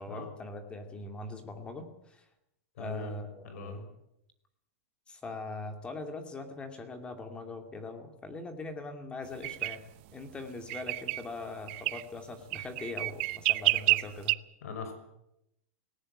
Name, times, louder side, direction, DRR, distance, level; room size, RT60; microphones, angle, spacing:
voice 1, 0.0-2.2 2.8-3.9 5.1-9.8 10.1-14.4, left 2 dB, 10° left, 6 dB, 2.5 m, -41 dB
voice 2, 2.8-3.1 3.4-3.8 14.6-14.9, left 5 dB, 75° left, 7 dB, 6.2 m, -40 dB
Florida Mockingbird in my backyard, 9.4-9.8 10.7-11.2 11.7-12.0 12.5-14.4, right 21 dB, 45° right, 0.7 m, -28 dB
18.5 x 18.5 x 8.8 m, 0.83 s
supercardioid pair, 160°, 8 cm